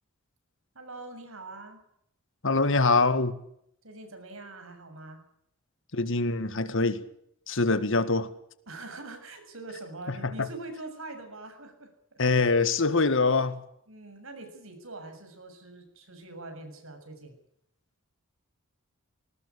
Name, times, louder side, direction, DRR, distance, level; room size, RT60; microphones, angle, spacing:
voice 1, 0.8-1.8 3.8-5.2 8.7-11.9 13.9-17.4, right 2 dB, 75° right, 7.1 m, -43 dB
voice 2, 2.4-3.3 5.9-7.0 7.5-8.3 10.1-10.5 12.2-13.6, left 3 dB, 65° left, 1.8 m, -24 dB
20.0 x 19.0 x 8.4 m
head